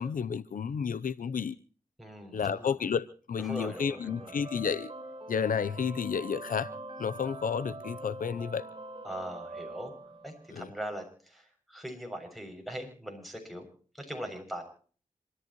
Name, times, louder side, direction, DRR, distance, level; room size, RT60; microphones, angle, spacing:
voice 1, 0.0-1.6 2.3-4.9 5.3-6.7 7.0-8.7 10.5-10.7, left 6 dB, 80° left, 0.7 m, -31 dB
voice 2, 2.0-2.7 3.4-4.3 9.0-9.9 10.2-13.7 13.9-14.6, equal, ahead, 6.9 m, -41 dB
sound 1, 3.7-10.7, right 2 dB, 40° right, 5.0 m, -44 dB
27.0 x 13.5 x 3.0 m
cardioid pair, 45°, 14 cm